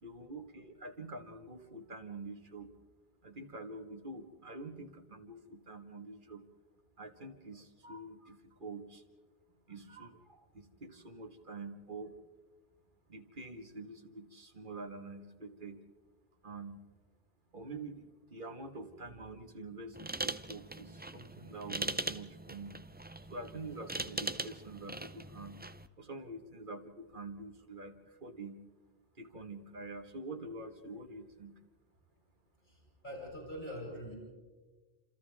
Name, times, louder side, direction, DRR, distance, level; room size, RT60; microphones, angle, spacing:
voice 1, 0.0-2.7 3.2-6.4 7.0-9.0 9.7-12.1 13.1-15.8 16.4-16.8 17.5-22.8 23.3-25.6 26.0-28.6 29.2-31.6, right 2 dB, 55° right, 6 dB, 1.9 m, -46 dB
sound 1, 19.9-25.9, right 2 dB, 15° right, 0.4 m, -41 dB
voice 2, 32.6-34.2, equal, 50° left, -4 dB, 7.6 m, -44 dB
29.0 x 28.0 x 3.6 m, 1.3 s
omnidirectional pair, 1.0 m